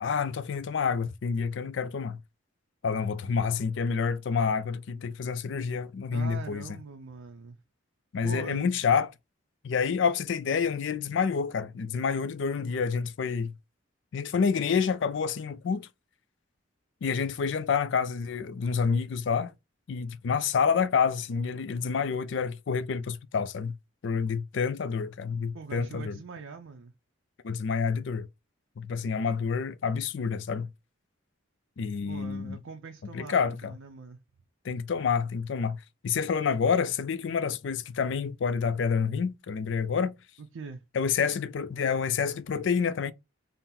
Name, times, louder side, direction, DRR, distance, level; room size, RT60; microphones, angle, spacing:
voice 1, 0.0-2.2 2.8-6.6 8.1-9.1 9.6-13.5 14.1-15.9 17.0-19.5 19.9-23.7 24.0-26.1 27.4-28.3 28.8-30.7 31.8-32.6 33.1-33.7 34.6-35.8 36.0-40.1 40.9-43.1, left 6 dB, 60° left, 0.4 m, -28 dB
voice 2, 6.1-7.6 8.2-8.8 25.5-26.9 32.0-34.2 40.4-40.8, right 4 dB, 70° right, 0.5 m, -42 dB
3.7 x 2.0 x 4.2 m
head